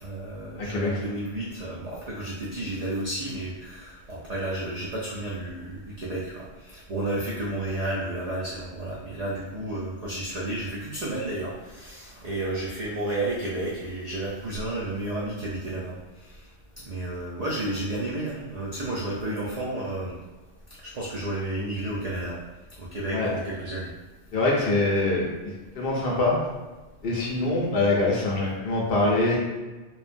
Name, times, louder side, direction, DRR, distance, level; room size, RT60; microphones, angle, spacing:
voice 1, 0.0-16.0 16.9-20.1 20.8-22.4 22.8-23.9, right 1 dB, 75° right, -6 dB, 0.3 m, -32 dB
voice 2, 0.6-0.9 23.1-23.3 24.3-25.3 25.7-26.3 27.0-29.4, left 2 dB, 60° left, -3 dB, 0.7 m, -24 dB
2.9 x 2.0 x 2.5 m, 1.2 s
omnidirectional pair, 1.2 m